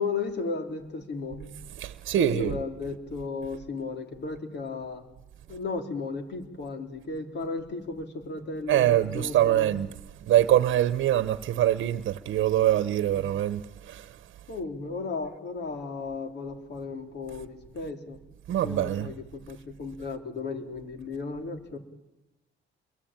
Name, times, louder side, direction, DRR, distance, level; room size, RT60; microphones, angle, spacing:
voice 1, 0.0-1.5 2.2-5.0 5.5-9.7 13.1-13.3 14.5-18.2 18.6-21.8, left 4 dB, 60° left, 3.8 m, -35 dB
voice 2, 1.8-2.5 8.7-9.9 10.3-14.0 18.5-19.1, right 12 dB, 75° right, 1.0 m, -24 dB
28.5 x 22.5 x 9.0 m
cardioid pair, 90°, 20 cm